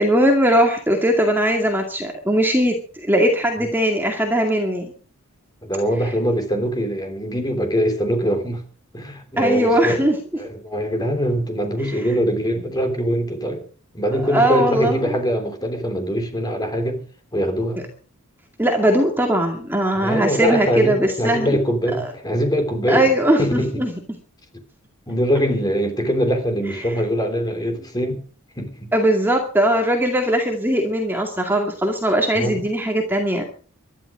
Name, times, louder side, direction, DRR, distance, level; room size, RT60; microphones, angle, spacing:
voice 1, 0.0-4.9 9.4-10.2 14.3-15.1 18.6-21.6 22.0-22.1 22.9-23.9 28.9-33.4, right 1 dB, 10° right, 2.2 m, -19 dB
voice 2, 5.6-8.6 8.9-10.1 10.4-13.6 13.9-17.0 17.3-17.8 19.9-23.1 23.4-23.8 25.1-28.2 28.6-28.9 32.3-32.6, equal, 20° left, 3.3 m, -23 dB
20.5 x 13.0 x 5.0 m
head